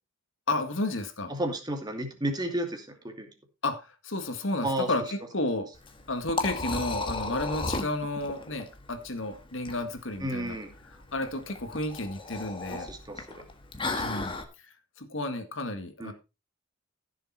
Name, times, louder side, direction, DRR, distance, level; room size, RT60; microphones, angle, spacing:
voice 1, 0.5-1.3 3.6-5.7 6.1-10.6 11.1-12.9 14.0-14.3 15.0-16.1, left 2 dB, 65° left, 1.8 m, -32 dB
voice 2, 1.3-3.3 4.6-4.9 10.2-10.7 12.7-13.4 13.9-14.0 16.0-16.1, right 1 dB, 20° right, 2.4 m, -32 dB
Liquid, 5.7-14.4, left 2 dB, 25° left, 1.6 m, -35 dB
15.0 x 6.9 x 4.3 m
head